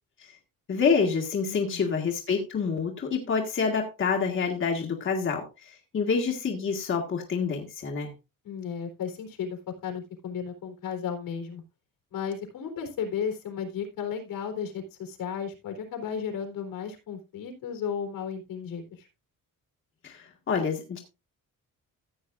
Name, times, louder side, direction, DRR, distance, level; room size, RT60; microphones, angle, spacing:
voice 1, 0.7-8.1 20.0-21.0, left 5 dB, 40° left, 1 dB, 1.7 m, -27 dB
voice 2, 1.5-1.9 8.4-11.6 12.1-19.1, left 7 dB, 85° left, 4 dB, 3.8 m, -34 dB
14.5 x 8.6 x 2.6 m, 0.27 s
cardioid pair, 175°, 33 cm